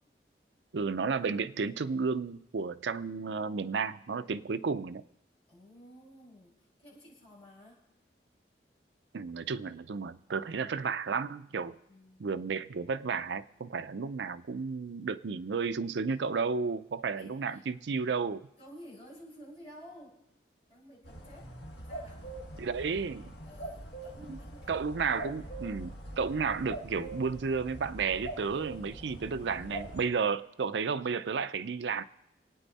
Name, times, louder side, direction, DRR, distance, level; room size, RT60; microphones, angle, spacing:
voice 1, 0.7-5.0 9.1-11.8 12.2-18.4 22.6-23.3 24.3-24.4 24.7-32.0, right 5 dB, 85° right, 13 dB, 0.5 m, -32 dB
voice 2, 5.5-7.8 11.9-12.2 17.2-17.6 18.6-20.2 20.7-22.7 23.4-24.9, equal, 35° left, -5 dB, 6.2 m, -53 dB
sound 1, 21.0-30.1, right 1 dB, 75° left, 1.7 m, -43 dB
27.0 x 9.2 x 4.1 m, 0.82 s
head